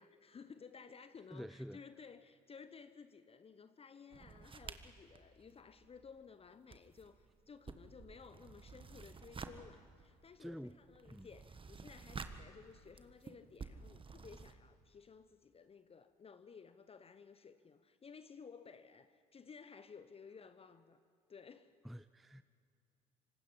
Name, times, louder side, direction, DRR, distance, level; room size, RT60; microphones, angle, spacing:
voice 1, 0.0-21.0 21.3-21.7, left 5 dB, 30° left, 12 dB, 1.0 m, -56 dB
voice 2, 1.3-1.8 10.4-10.8 11.1-11.3 21.8-22.4, equal, ahead, 13 dB, 0.5 m, -48 dB
sound 1, 4.1-6.3 6.6-14.5, right 4 dB, 25° right, 1.5 m, -52 dB
25.5 x 25.5 x 5.7 m, 2.3 s
figure-of-eight pair, 55°, 20 cm